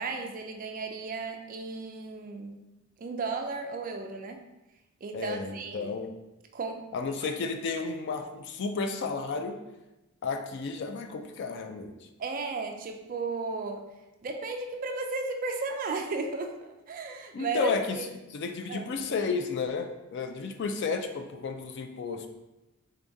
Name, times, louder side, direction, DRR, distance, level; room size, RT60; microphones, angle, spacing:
voice 1, 0.0-2.6 3.0-4.4 5.0-5.9 6.5-6.9 12.2-13.9 14.2-18.1 18.7-18.9, right 3 dB, 40° right, 4 dB, 0.3 m, -34 dB
voice 2, 5.1-6.1 6.9-9.6 10.2-12.0 17.3-18.0 18.3-22.3, left 4 dB, 50° left, 6 dB, 0.3 m, -32 dB
3.7 x 3.5 x 2.6 m, 1.0 s
head